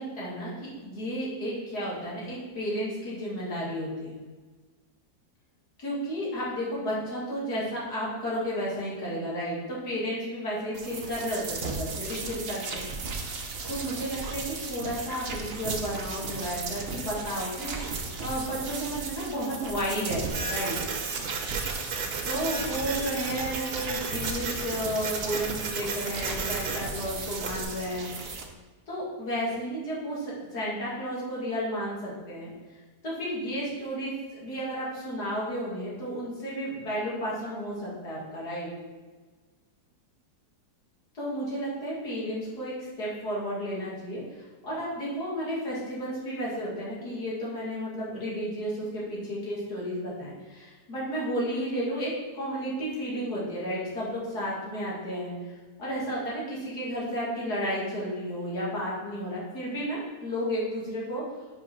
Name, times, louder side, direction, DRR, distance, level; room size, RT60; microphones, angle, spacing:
voice 1, 0.0-4.1 5.8-12.9 13.7-20.8 22.3-28.3 28.9-32.5 33.0-38.7 41.1-61.2, equal, 75° left, -7 dB, 2.8 m, -32 dB
sound 1, 10.7-28.5, right 4 dB, 45° right, 0.9 m, -35 dB
Printer, 20.3-27.6, right 5 dB, 75° right, 1.4 m, -35 dB
5.5 x 5.3 x 5.7 m, 1.4 s
omnidirectional pair, 1.7 m